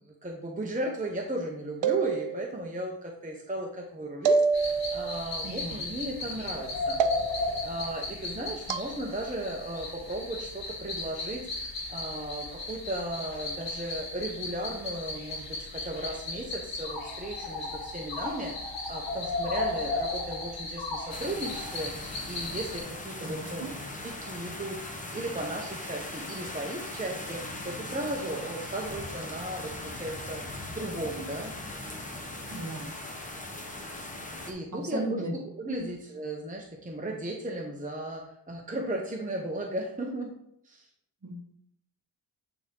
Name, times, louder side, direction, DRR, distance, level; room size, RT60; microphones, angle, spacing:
voice 1, 0.1-7.3 7.6-23.6 24.0-30.4 30.7-31.6 34.5-40.3 40.6-40.9, right 1 dB, 20° right, 0 dB, 0.8 m, -36 dB
sound 1, 1.8-2.6 4.3-5.2 7.0-7.6 8.7-8.9, right 5 dB, 80° right, 0.5 m, -27 dB
sound 2, 4.5-22.8, left 2 dB, 80° left, 2.7 m, -36 dB
voice 2, 5.4-5.8 23.2-23.7 32.5-32.9 34.8-35.3 35.7-35.9 41.2-41.4, right 2 dB, 40° right, 0 dB, 1.4 m, -36 dB
sound 3, 21.1-34.5, left 1 dB, 15° left, 1.0 m, -39 dB
9.0 x 3.6 x 3.8 m, 0.74 s
wide cardioid pair, 100°, 45 cm